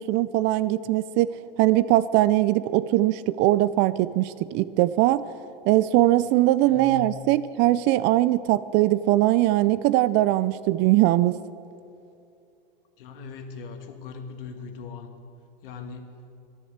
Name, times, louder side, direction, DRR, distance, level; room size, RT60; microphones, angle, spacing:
voice 1, 0.0-1.3 1.6-5.2 5.7-11.4, right 15 dB, 40° right, 17 dB, 0.4 m, -21 dB
voice 2, 6.6-7.3 13.0-15.1 15.6-16.3, left 4 dB, 70° left, 6 dB, 2.0 m, -39 dB
13.0 x 11.0 x 8.0 m, 2.6 s
hypercardioid pair, 120°, 29 cm